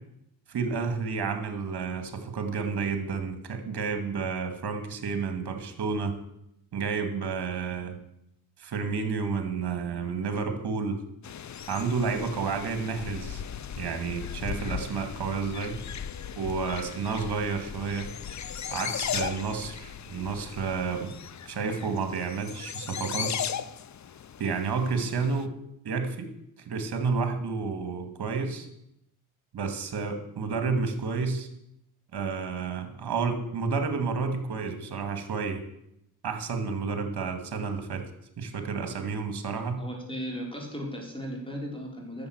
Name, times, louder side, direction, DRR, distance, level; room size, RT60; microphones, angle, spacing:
voice 1, 0.5-6.2 6.7-8.0 8.6-11.0 11.7-13.4 13.8-15.8 16.4-18.1 18.7-21.1 21.5-23.4 24.4-25.6 25.8-26.3 26.7-28.7 29.5-31.5 32.1-35.6 36.2-38.1 38.4-39.8, right 5 dB, 50° right, 7 dB, 2.5 m, -30 dB
sound 1, 11.2-25.5, left 8 dB, 35° left, 0.7 m, -37 dB
voice 2, 39.8-42.3, equal, 10° left, 0 dB, 4.5 m, -36 dB
10.5 x 7.5 x 8.0 m, 0.80 s
supercardioid pair, 60°, 49 cm